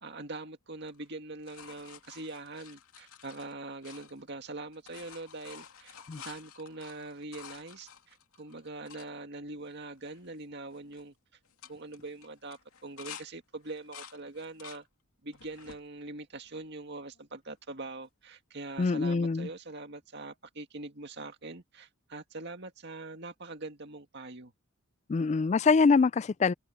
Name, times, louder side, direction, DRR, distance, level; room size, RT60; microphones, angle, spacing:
voice 1, 0.0-11.2 11.7-14.9 15.2-24.5, right 2 dB, 50° right, 2.1 m, -43 dB
sound 1, 0.8-4.5 4.7-9.1 9.7-9.8 10.0-10.4 10.7-11.0 11.4-13.3 13.6-14.8 15.3-15.8 16.5-17.2 18.8-18.9, left 8 dB, 85° left, 2.6 m, -51 dB
voice 2, 18.8-19.5 25.1-26.5, left 4 dB, 30° left, 0.3 m, -24 dB
head